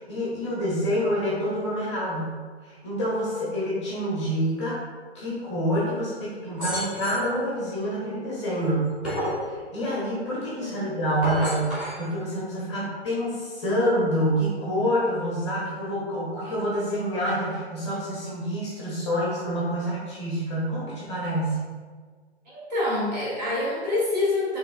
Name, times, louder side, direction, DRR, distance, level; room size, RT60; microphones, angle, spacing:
voice 1, 0.0-4.8 5.1-8.9 9.4-21.7, equal, 25° left, -6 dB, 0.8 m, -27 dB
sound 1, 6.6-7.3 8.6-9.5 11.0-12.0, equal, ahead, 1.1 m, -30 dB
voice 2, 22.5-24.6, left 2 dB, 35° right, -7 dB, 1.3 m, -26 dB
4.4 x 3.0 x 2.4 m, 1.5 s
figure-of-eight pair, 140°, 34 cm